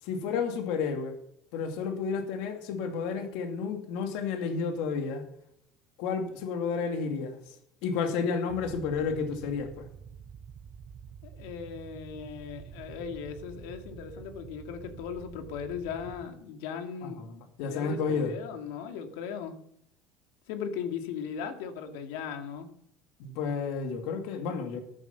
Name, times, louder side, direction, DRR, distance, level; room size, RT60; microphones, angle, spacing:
voice 1, 0.0-1.2 1.5-5.2 6.0-7.4 7.8-9.9 17.0-18.3 23.2-24.8, left 5 dB, 70° left, 2.4 m, -31 dB
sound 1, 8.5-16.2, right 8 dB, 30° right, 1.0 m, -48 dB
voice 2, 11.2-17.2 17.7-19.5 20.5-22.7, left 7 dB, 90° left, 2.3 m, -38 dB
14.0 x 11.0 x 5.8 m
cardioid pair, 160°, 0 cm